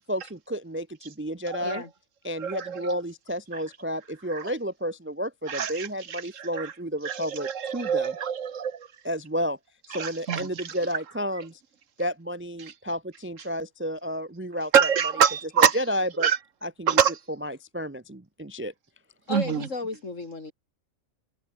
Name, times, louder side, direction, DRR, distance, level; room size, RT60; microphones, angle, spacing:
voice 1, 0.1-1.8 2.2-8.2 9.0-9.6 9.9-11.6 12.0-14.9 15.6-16.3 16.6-17.0 17.4-18.7, equal, 10° right, 0.7 m, -31 dB
voice 2, 2.4-2.8 5.5-6.7 7.0-8.9 9.9-10.5 14.7-15.8 16.2-16.4 16.9-17.1 19.3-19.7, right 7 dB, 70° right, 1.4 m, -24 dB
voice 3, 19.3-20.5, left 3 dB, 65° left, 3.5 m, -33 dB
omnidirectional pair, 1.4 m